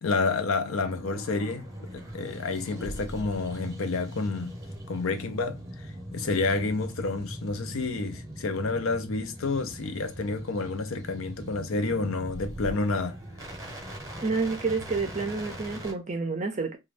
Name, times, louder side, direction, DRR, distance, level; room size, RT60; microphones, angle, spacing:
voice 1, 0.0-4.6 4.9-13.2, left 3 dB, 80° left, 0.6 m, -29 dB
sound 1, 0.6-15.9, right 1 dB, 15° right, 0.8 m, -40 dB
voice 2, 14.2-16.8, right 4 dB, 35° right, 0.4 m, -29 dB
2.6 x 2.3 x 3.2 m
head